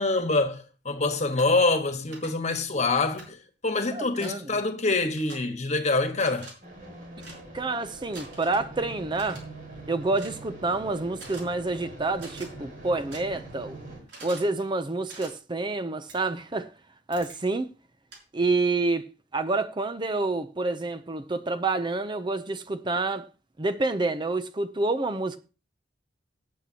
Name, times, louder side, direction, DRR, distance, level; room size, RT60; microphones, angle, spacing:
voice 1, 0.0-3.4 3.6-6.5, left 3 dB, 40° left, 1.4 m, -25 dB
sound 1, 1.3-1.4 2.1-2.3 3.2-3.3 4.2-4.3 5.1-5.4 6.1-6.5 7.2-7.4 8.1-8.6 9.1-9.4 10.1-10.4 11.1-11.4 12.1-12.5 13.1-13.2 14.1-14.5 15.1-15.3 16.1-16.2 17.1-17.4 18.1-18.2, right 3 dB, 75° right, 5.7 m, -45 dB
voice 2, 3.9-4.5 7.5-9.4 9.9-13.8 14.2-16.7 17.1-17.7 18.3-19.1 19.3-23.3 23.6-25.4, right 3 dB, 25° right, 0.6 m, -28 dB
sound 2, 6.6-14.0, right 2 dB, 50° right, 4.7 m, -43 dB
18.0 x 8.3 x 2.9 m
head